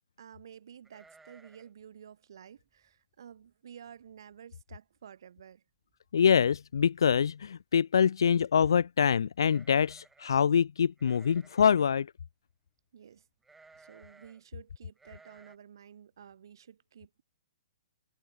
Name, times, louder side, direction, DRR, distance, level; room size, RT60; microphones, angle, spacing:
voice 1, 0.2-5.6 12.9-13.3 13.8-17.2, right 8 dB, 60° right, 7.3 m, -52 dB
sound 1, 0.8-1.8 2.1-2.2 2.6-2.9 3.5-3.6 3.9-4.4 4.7-4.8 5.9-6.0 6.3-6.7 9.4-10.4 11.0-11.9 13.4-14.4 15.0-15.6, right 3 dB, 5° right, 3.7 m, -59 dB
voice 2, 6.1-12.1, left 7 dB, 65° left, 0.3 m, -25 dB
figure-of-eight pair, 120°, 3 cm